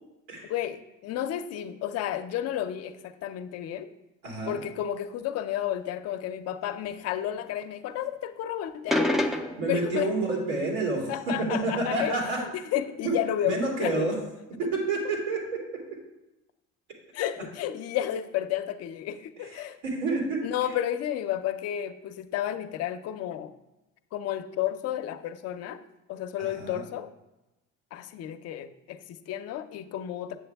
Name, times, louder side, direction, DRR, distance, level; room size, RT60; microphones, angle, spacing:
voice 1, 0.5-3.9 4.5-9.1 9.7-10.1 11.1-12.1 12.4-14.1 14.6-14.7 17.1-19.8 20.4-23.5 24.1-25.8 26.1-27.1 27.9-30.4, left 11 dB, 55° left, 10 dB, 0.6 m, -32 dB
voice 2, 4.2-4.6 9.6-12.4 13.0-13.1 13.4-14.1 14.6-15.6 19.4-20.4 26.4-26.8, right 2 dB, 85° right, -2 dB, 3.2 m, -29 dB
sound 1, 8.9-9.9, left 1 dB, ahead, 0.4 m, -26 dB
7.9 x 7.6 x 3.4 m, 0.97 s
cardioid pair, 145°, 29 cm